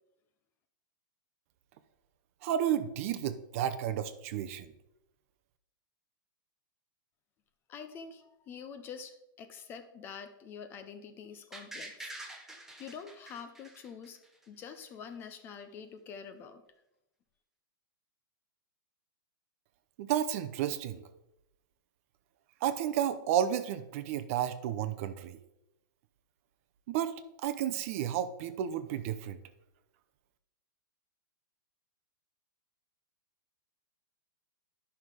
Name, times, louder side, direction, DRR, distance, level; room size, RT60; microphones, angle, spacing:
voice 1, 2.4-4.7 20.0-21.0 22.6-25.4 26.9-27.1 27.4-29.4, right 10 dB, 35° right, 11 dB, 0.6 m, -32 dB
voice 2, 7.7-12.1 12.8-14.2 14.5-16.6, left 6 dB, 20° left, 9 dB, 0.5 m, -46 dB
sound 1, 11.5-14.4 14.8-14.9, right 1 dB, 5° right, 0.9 m, -46 dB
11.0 x 5.8 x 4.8 m, 0.88 s
hypercardioid pair, 165°, 12 cm